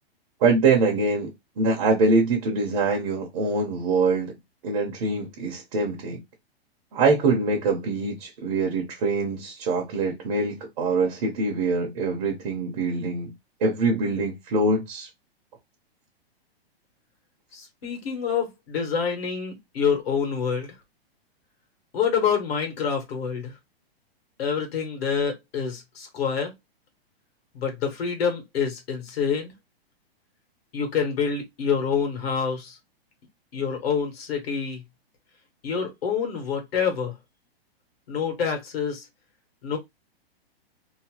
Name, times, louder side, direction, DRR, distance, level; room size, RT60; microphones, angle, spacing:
voice 1, 0.4-1.3 1.6-4.4 4.6-6.2 6.9-13.3 13.6-15.1, right 3 dB, 35° right, 0.8 m, -24 dB
voice 2, 17.5-20.7 21.9-23.5 24.4-26.5 27.5-29.5 30.7-32.8 33.5-34.8 35.6-37.1 38.1-39.0 39.6-39.8, left 6 dB, 70° left, 1.3 m, -27 dB
2.9 x 2.0 x 2.9 m
hypercardioid pair, 170°, 31 cm